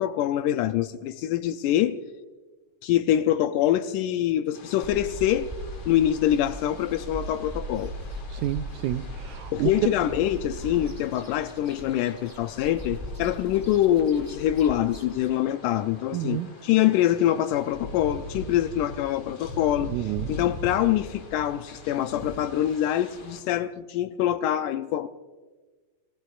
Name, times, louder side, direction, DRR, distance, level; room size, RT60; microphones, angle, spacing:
voice 1, 0.0-2.0 2.8-5.5 5.9-7.9 9.5-19.9 20.3-25.1, left 12 dB, 80° left, 10 dB, 1.9 m, -24 dB
sound 1, 4.5-23.4, left 1 dB, 45° left, 3.5 m, -43 dB
sound 2, 4.8-15.4, right 1 dB, 15° right, 0.8 m, -39 dB
voice 2, 8.3-9.7 16.1-16.5 19.9-20.4, right 13 dB, 85° right, 9 dB, 1.8 m, -29 dB
30.0 x 15.0 x 2.4 m, 1.3 s
omnidirectional pair, 4.0 m